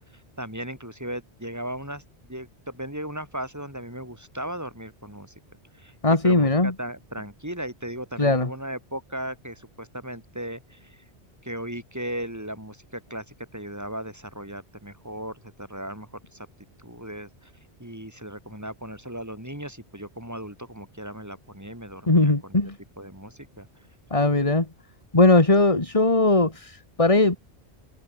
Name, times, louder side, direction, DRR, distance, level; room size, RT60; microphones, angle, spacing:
voice 1, 0.1-2.0 2.3-5.3 5.8-11.0 11.4-16.5 16.8-17.5 17.8-22.6 23.0-23.7, right 1 dB, 15° right, 5.6 m, -37 dB
voice 2, 6.0-6.7 8.2-8.5 22.1-22.8 24.1-24.7 25.1-27.4, left 2 dB, 30° left, 2.4 m, -19 dB
omnidirectional pair, 1.1 m